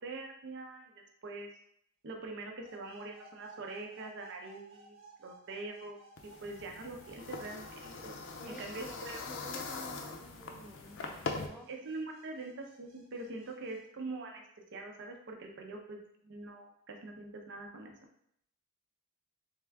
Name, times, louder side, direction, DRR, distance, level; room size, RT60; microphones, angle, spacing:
voice 1, 0.0-0.9 1.2-1.5 2.0-6.0 6.4-8.1 8.5-9.2 11.7-14.4 14.7-16.0 16.2-17.9, right 2 dB, 55° right, 2 dB, 0.6 m, -43 dB
sound 1, 2.6-13.8, right 3 dB, 30° right, 0.9 m, -59 dB
sound 2, 6.2-11.5, left 4 dB, 60° left, 0.6 m, -42 dB
voice 2, 8.4-11.7, left 1 dB, ahead, 2 dB, 0.4 m, -50 dB
3.6 x 3.3 x 3.5 m, 0.71 s
head